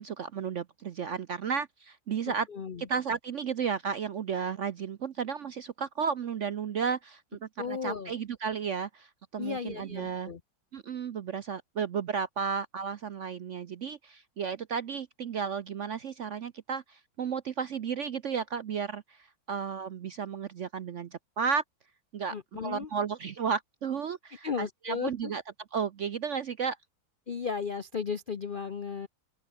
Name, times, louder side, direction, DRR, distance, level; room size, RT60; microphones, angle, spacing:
voice 1, 0.0-2.5 2.8-10.3 10.7-21.6 22.1-25.4 25.7-26.8, right 6 dB, 60° right, 0.8 m, -33 dB
voice 2, 2.3-2.9 7.6-8.1 9.4-10.4 22.3-22.9 24.4-25.3 27.3-29.1, left 5 dB, 55° left, 0.6 m, -35 dB
open air
omnidirectional pair, 2.0 m